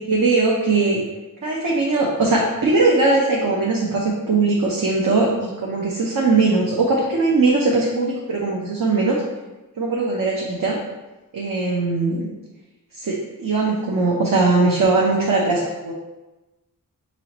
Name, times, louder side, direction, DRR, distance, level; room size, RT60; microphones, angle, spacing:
voice 1, 0.1-1.0 1.4-9.2 9.8-10.8 11.3-12.3 12.9-15.9, right 3 dB, 70° right, -4 dB, 0.8 m, -20 dB
5.5 x 3.1 x 2.9 m, 1.1 s
wide cardioid pair, 95°, 34 cm